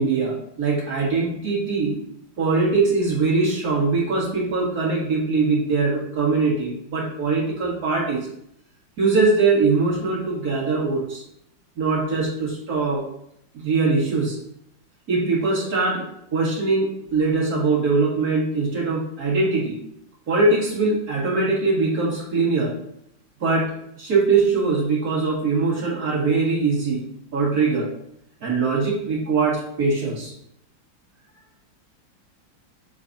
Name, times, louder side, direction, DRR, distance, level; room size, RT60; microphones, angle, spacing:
voice 1, 0.0-2.0 2.4-8.2 9.0-11.2 11.8-13.0 13.5-14.4 15.1-16.0 16.3-19.8 20.3-22.7 23.4-23.7 24.0-27.0 27.3-27.9 28.4-30.3, right 3 dB, 55° right, -5 dB, 2.3 m, -22 dB
7.3 x 4.9 x 2.7 m, 0.74 s
omnidirectional pair, 2.0 m